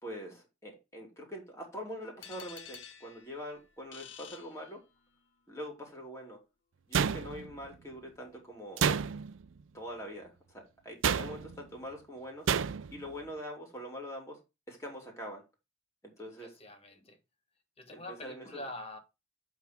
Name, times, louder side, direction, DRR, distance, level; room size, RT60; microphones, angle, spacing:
voice 1, 0.0-4.8 5.5-6.4 6.9-8.9 9.7-12.5 12.9-14.4 14.7-15.4 16.2-16.5 17.9-18.6, equal, 15° left, 2.9 m, -44 dB
sound 1, 2.2-5.2, left 8 dB, 65° left, 1.0 m, -51 dB
sound 2, 6.9-7.7 8.8-9.4 11.0-11.6 12.5-13.0, right 7 dB, 75° right, 0.5 m, -30 dB
voice 2, 16.3-17.2 17.8-19.0, left 1 dB, 30° left, 1.3 m, -45 dB
8.3 x 3.7 x 5.0 m
head